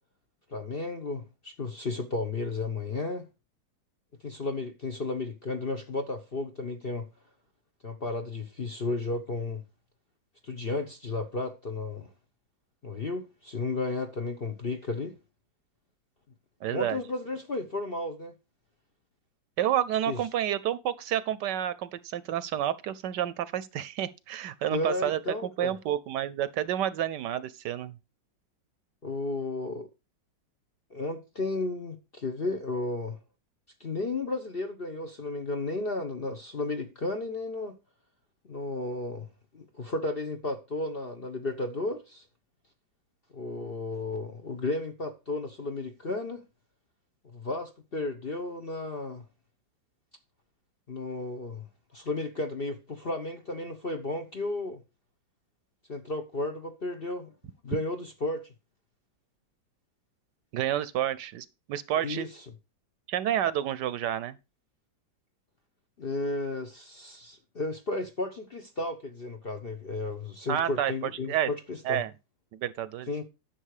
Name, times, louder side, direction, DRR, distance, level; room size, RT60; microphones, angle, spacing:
voice 1, 0.5-3.3 4.2-7.1 7.8-9.6 10.4-12.1 12.8-15.2 16.7-18.3 20.1-20.2 24.7-25.7 29.0-29.9 30.9-33.2 33.8-37.8 38.4-39.3 39.5-42.2 43.3-46.4 47.2-49.2 50.9-51.7 51.9-54.8 55.9-57.3 57.6-58.4 62.0-62.3 66.0-72.0 73.1-73.2, left 2 dB, 40° left, 0.8 m, -33 dB
voice 2, 16.6-17.0 19.6-27.9 60.5-62.3 63.1-64.4 70.5-71.5 71.8-72.1 72.5-73.2, right 11 dB, 70° right, 1.2 m, -30 dB
10.0 x 6.6 x 4.8 m
omnidirectional pair, 2.0 m